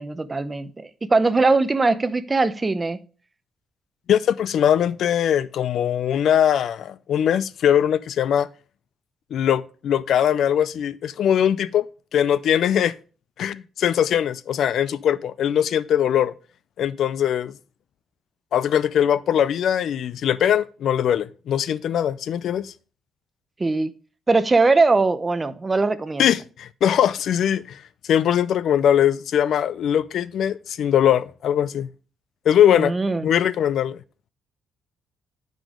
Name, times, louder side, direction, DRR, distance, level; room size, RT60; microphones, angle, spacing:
voice 1, 0.0-3.0 23.6-23.9 24.3-26.3 32.7-33.3, right 3 dB, 25° right, 0.7 m, -21 dB
voice 2, 4.1-8.5 9.3-11.9 12.1-12.9 13.4-16.3 16.8-17.5 18.5-22.7 26.2-27.8 28.1-31.9 32.5-32.9 33.2-34.0, left 9 dB, 70° left, 0.4 m, -21 dB
9.1 x 5.1 x 3.7 m
cardioid pair, 90°, 0 cm